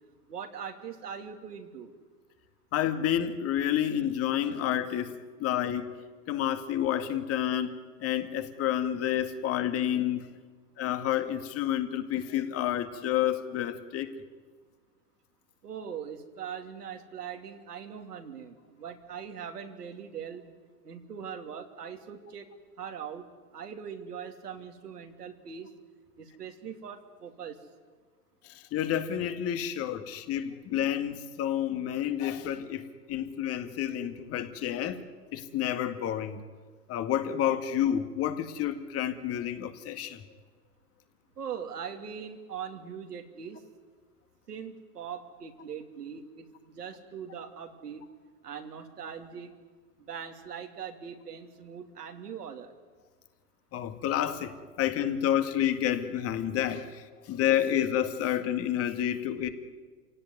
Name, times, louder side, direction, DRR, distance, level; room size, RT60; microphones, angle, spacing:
voice 1, 0.3-1.9 15.6-20.5 20.8-22.5 22.8-23.2 23.5-25.7 26.2-27.6 41.4-43.6 44.5-48.0 48.4-49.5 50.0-52.7, right 7 dB, 75° right, 4 dB, 3.1 m, -41 dB
voice 2, 2.7-6.0 6.3-10.4 10.8-14.1 28.4-35.0 35.3-36.5 36.9-40.2 53.7-59.5, left 10 dB, 30° left, 9 dB, 2.1 m, -29 dB
28.0 x 17.5 x 9.6 m, 1.4 s
hypercardioid pair, 110°, 47 cm